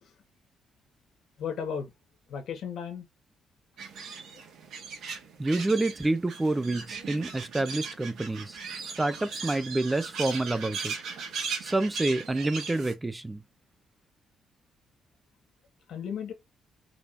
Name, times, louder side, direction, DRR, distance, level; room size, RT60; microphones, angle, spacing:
voice 1, 1.4-1.9 2.3-3.0 15.9-16.3, left 7 dB, 75° left, 1.6 m, -34 dB
sound 1, 3.8-12.9, right 5 dB, 75° right, 2.0 m, -38 dB
voice 2, 5.4-8.6 9.0-10.9 11.6-13.4, right 2 dB, 15° right, 0.6 m, -28 dB
5.0 x 3.2 x 2.6 m
cardioid pair, 90°, 0 cm